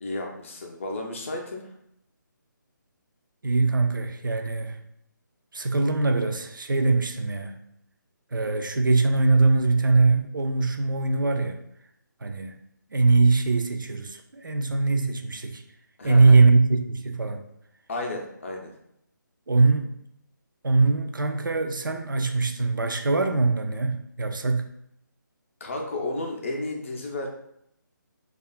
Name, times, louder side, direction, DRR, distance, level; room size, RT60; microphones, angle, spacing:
voice 1, 0.0-1.7 16.0-16.4 17.9-18.7 25.6-27.3, left 2 dB, 40° left, 1 dB, 0.5 m, -32 dB
voice 2, 3.4-4.8 5.5-7.6 8.3-11.6 12.2-12.5 12.9-15.6 16.0-16.6 16.9-17.4 19.5-19.9 20.6-24.7, right 3 dB, 75° right, 6 dB, 0.4 m, -22 dB
2.5 x 2.3 x 2.2 m, 0.75 s
figure-of-eight pair, 150°, 11 cm